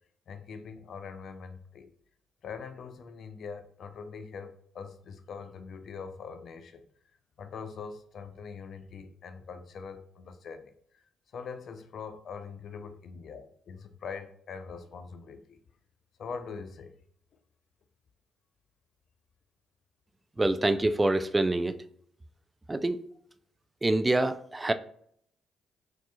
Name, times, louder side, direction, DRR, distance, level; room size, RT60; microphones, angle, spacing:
voice 1, 0.3-1.9 2.4-6.8 7.4-11.0 11.3-15.6 16.2-16.9, left 5 dB, 55° left, 0.4 m, -43 dB
voice 2, 20.4-21.8 22.7-23.0 23.8-24.7, right 2 dB, 20° right, 0.4 m, -26 dB
5.9 x 2.8 x 2.3 m
hypercardioid pair, 45°, 0 cm